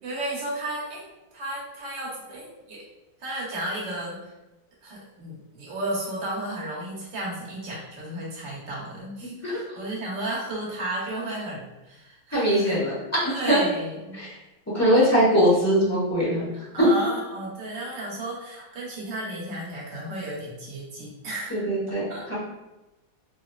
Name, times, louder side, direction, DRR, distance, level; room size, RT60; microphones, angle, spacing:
voice 1, 0.0-1.0 1.3-2.8 3.2-4.2 4.8-12.8 13.3-14.2 16.7-21.6 22.1-22.2, right 1 dB, 65° right, -5 dB, 1.6 m, -33 dB
voice 2, 9.2-9.6 12.3-12.9 13.2-13.6 14.1-14.4 14.7-16.9 21.5-22.3, equal, 15° left, -8 dB, 0.5 m, -22 dB
3.9 x 2.7 x 2.3 m, 1.0 s
omnidirectional pair, 2.2 m